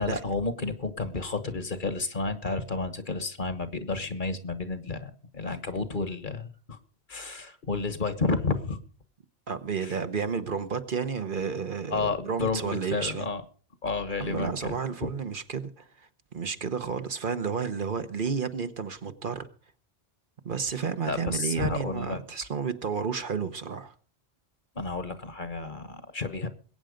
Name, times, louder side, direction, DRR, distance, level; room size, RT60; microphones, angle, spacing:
voice 1, 0.0-6.8 7.1-8.8 9.8-9.9 11.9-13.4 13.8-15.1 21.1-22.2 24.7-26.5, left 3 dB, 50° left, 1.5 m, -31 dB
voice 2, 9.5-13.3 14.2-19.5 20.4-23.9, right 6 dB, 55° right, 1.2 m, -31 dB
21.5 x 9.0 x 5.1 m
omnidirectional pair, 1.1 m